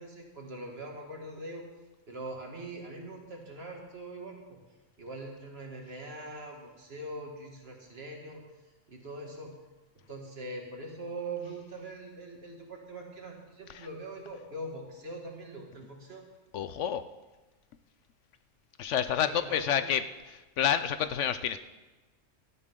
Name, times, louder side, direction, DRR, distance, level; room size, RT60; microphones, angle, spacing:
voice 1, 0.0-1.6 2.1-4.6 5.0-8.4 8.9-9.5 10.1-16.2 19.2-19.9, right 2 dB, 50° right, 0 dB, 2.4 m, -42 dB
voice 2, 16.5-17.0 18.8-20.0 20.3-21.6, left 9 dB, 70° left, 12 dB, 0.9 m, -29 dB
17.0 x 12.0 x 3.7 m, 1.2 s
omnidirectional pair, 1.3 m